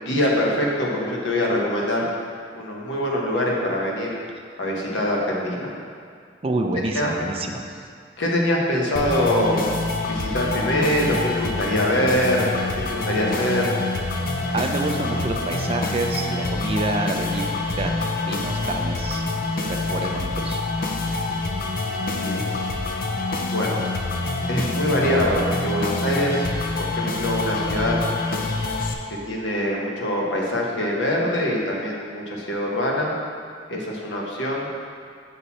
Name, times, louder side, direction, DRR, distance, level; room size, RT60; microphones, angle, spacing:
voice 1, 0.0-2.1 2.5-4.1 4.6-5.7 6.9-7.1 8.2-9.6 10.1-12.5 12.9-13.6 22.1-22.4 23.4-23.8 24.5-26.5 26.8-28.0 29.1-33.1 33.7-34.7, left 1 dB, 75° left, -3 dB, 1.3 m, -24 dB
voice 2, 6.4-7.6 10.2-10.3 14.5-17.5 17.8-17.9 18.2-19.2 19.7-20.6, right 2 dB, 30° right, 3 dB, 0.5 m, -27 dB
sound 1, 9.0-28.9, left 2 dB, 50° left, 0.6 m, -26 dB
6.6 x 5.9 x 4.2 m, 2.2 s
head